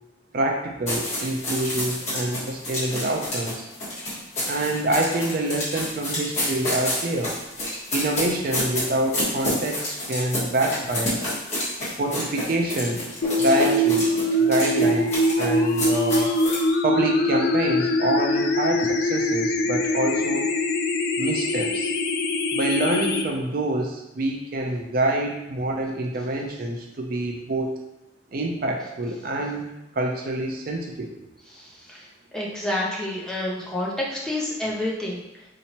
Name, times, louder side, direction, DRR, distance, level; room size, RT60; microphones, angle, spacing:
voice 1, 0.3-3.7 4.5-7.3 7.9-11.2 12.0-13.0 13.4-14.1 14.4-16.3 16.8-20.5 21.2-21.9 22.5-27.7 28.3-29.6 29.9-31.1, right 2 dB, 50° right, 1 dB, 0.4 m, -26 dB
sound 1, 0.9-16.6, left 1 dB, 40° left, 1.4 m, -29 dB
sound 2, 13.2-23.2, left 1 dB, 55° left, 0.3 m, -23 dB
voice 2, 31.5-32.1 32.3-35.5, left 1 dB, 5° left, -5 dB, 0.6 m, -29 dB
4.2 x 2.9 x 2.8 m, 0.94 s
head